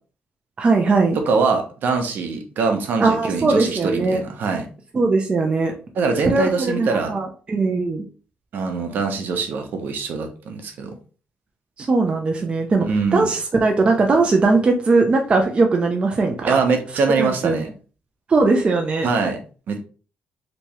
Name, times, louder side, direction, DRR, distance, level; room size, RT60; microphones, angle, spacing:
voice 1, 0.6-1.2 3.0-4.2 4.9-5.7 6.3-8.0 11.8-12.9 13.1-16.6 17.2-17.6 18.3-19.1, right 3 dB, 30° right, 3 dB, 0.5 m, -19 dB
voice 2, 1.3-4.7 5.9-7.1 8.5-10.9 12.8-13.3 16.5-17.7 19.0-19.4 19.7-19.8, right 4 dB, 65° right, 4 dB, 0.8 m, -23 dB
3.3 x 3.0 x 2.9 m, 0.37 s
cardioid pair, 120°, 4 cm